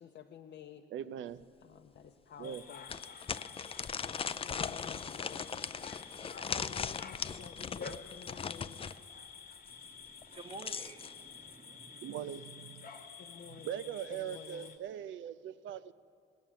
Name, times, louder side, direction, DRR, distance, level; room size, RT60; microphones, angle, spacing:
voice 1, 0.0-0.9 1.6-2.9 4.4-6.0 6.5-8.8 13.2-14.8, left 8 dB, 65° left, 3 dB, 0.7 m, -52 dB
voice 2, 0.9-1.4 2.4-2.6 12.0-12.9 13.5-15.9, right 9 dB, 75° right, 15 dB, 0.6 m, -41 dB
sound 1, 1.4-1.5 2.0-2.1 2.9-9.0 10.2-11.1, left 6 dB, 30° left, 0.4 m, -39 dB
sound 2, 2.4-14.8, left 6 dB, 45° left, 1.1 m, -50 dB
voice 3, 9.7-12.6, right 3 dB, 30° right, 10 dB, 0.7 m, -52 dB
18.0 x 7.3 x 9.1 m, 2.3 s
cardioid pair, 90°, 20 cm